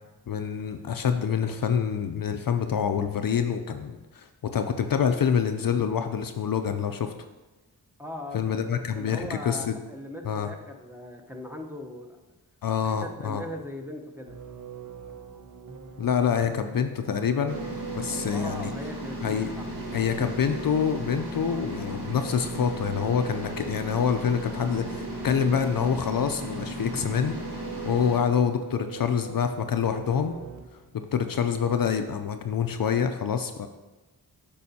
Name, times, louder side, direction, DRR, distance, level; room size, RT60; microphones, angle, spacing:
voice 1, 0.3-7.1 8.3-9.7 10.2-10.5 12.6-13.4 16.0-17.6 17.9-18.7 19.2-19.5 19.9-30.3 30.9-33.7, left 7 dB, 55° left, 7 dB, 0.5 m, -26 dB
voice 2, 8.0-8.5 8.9-12.2 12.8-14.4 18.1-19.6, left 1 dB, 5° right, 2 dB, 0.8 m, -39 dB
sound 1, 14.3-30.9, right 7 dB, 45° right, 0.9 m, -42 dB
sound 2, 17.5-28.2, equal, 80° right, 2.0 m, -36 dB
8.4 x 5.5 x 2.8 m, 1.1 s
cardioid pair, 50°, 41 cm